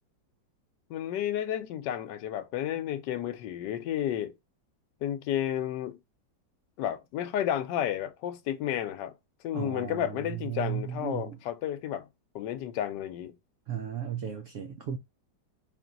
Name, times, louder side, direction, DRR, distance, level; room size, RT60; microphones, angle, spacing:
voice 1, 0.9-4.3 5.0-6.0 6.8-9.1 9.4-12.1 12.3-13.3, left 11 dB, 75° left, 1.2 m, -32 dB
voice 2, 9.5-11.4 13.7-15.0, right 8 dB, 80° right, 0.6 m, -35 dB
3.7 x 2.6 x 3.8 m
omnidirectional pair, 2.0 m